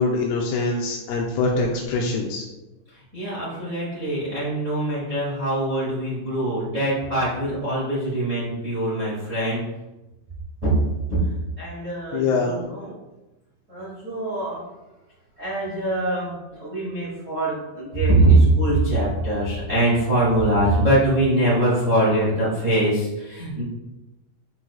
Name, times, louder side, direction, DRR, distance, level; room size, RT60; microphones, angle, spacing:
voice 1, 0.0-2.5 12.1-12.6, left 3 dB, 90° left, -1 dB, 2.4 m, -23 dB
voice 2, 2.9-9.6 10.6-10.7 11.6-12.9 13.7-14.6 15.4-23.6, right 1 dB, 35° right, -8 dB, 1.2 m, -22 dB
9.9 x 4.7 x 2.3 m, 1.0 s
omnidirectional pair, 5.4 m